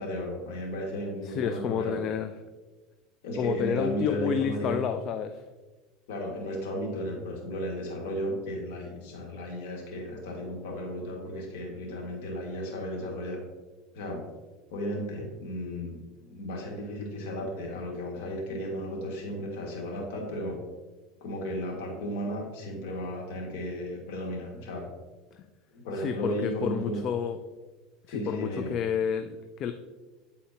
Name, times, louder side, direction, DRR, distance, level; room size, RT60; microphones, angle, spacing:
voice 1, 0.0-2.0 3.2-4.8 6.1-13.4 13.9-14.2 14.7-20.6 21.2-24.9 25.7-27.0 28.1-28.7, equal, 75° left, -1 dB, 1.9 m, -34 dB
voice 2, 1.2-2.3 3.4-5.4 26.0-27.4 28.1-29.7, left 8 dB, 45° left, 8 dB, 0.4 m, -30 dB
9.2 x 4.2 x 2.9 m, 1.2 s
supercardioid pair, 110°, 0 cm